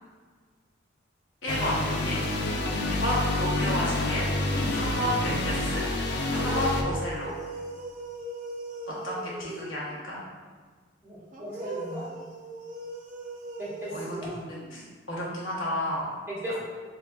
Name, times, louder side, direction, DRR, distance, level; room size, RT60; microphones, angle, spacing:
voice 1, 1.4-2.2 2.9-4.2 4.7-5.8 6.4-7.3 8.9-10.2 13.9-16.1, equal, 80° left, -5 dB, 0.9 m, -31 dB
sound 1, 1.5-6.8, left 2 dB, 55° left, 0.4 m, -28 dB
voice 2, 2.7-3.0 8.9-9.0 11.0-12.0 13.6-14.1 16.3-16.6, equal, 15° right, -11 dB, 1.5 m, -37 dB
sound 2, 6.2-10.0 11.3-14.9, right 1 dB, 40° right, 0.4 m, -39 dB
4.0 x 3.5 x 2.3 m, 1.5 s
head